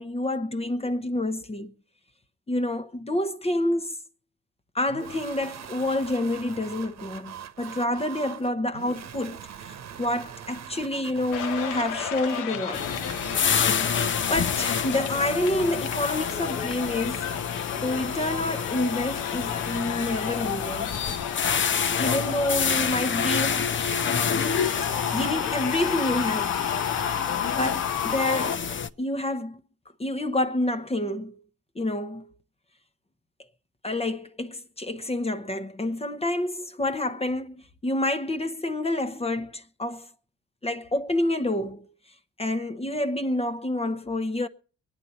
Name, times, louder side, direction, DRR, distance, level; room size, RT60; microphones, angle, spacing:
voice 1, 0.0-1.7 2.5-4.0 4.7-12.9 14.3-17.3 17.7-20.9 22.0-23.7 24.9-26.6 27.5-28.6 29.0-29.6 30.0-31.3 31.7-32.3 33.8-40.1 40.6-41.9 42.4-44.5, left 1 dB, 20° left, 1.0 m, -28 dB
sound 1, 4.9-13.6, right 8 dB, 60° right, 1.2 m, -42 dB
sound 2, 11.3-28.6, left 9 dB, 90° left, 1.2 m, -32 dB
sound 3, 12.7-28.9, left 6 dB, 40° left, 0.8 m, -28 dB
23.0 x 9.6 x 4.1 m
cardioid pair, 90°, 30 cm